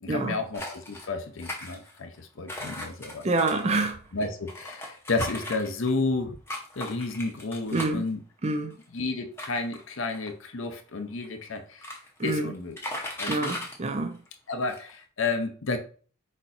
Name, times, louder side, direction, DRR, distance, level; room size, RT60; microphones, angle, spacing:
voice 1, 0.0-3.3 4.1-6.3 6.8-8.2 8.9-12.0 12.2-12.8 13.2-13.5 14.5-15.8, left 3 dB, 60° left, 0.7 m, -31 dB
sound 1, 0.5-1.1 1.4-2.2 2.5-6.0 6.5-8.1 8.7-8.8 9.4-10.4 11.2-11.3 11.5-12.2 12.5-13.7 14.3-14.4 14.6-14.9, left 1 dB, 10° left, 0.8 m, -37 dB
voice 2, 3.2-4.0 7.7-8.0 8.4-8.7 12.2-12.5 13.3-14.2, right 2 dB, 30° right, 0.4 m, -27 dB
4.5 x 4.3 x 2.6 m
head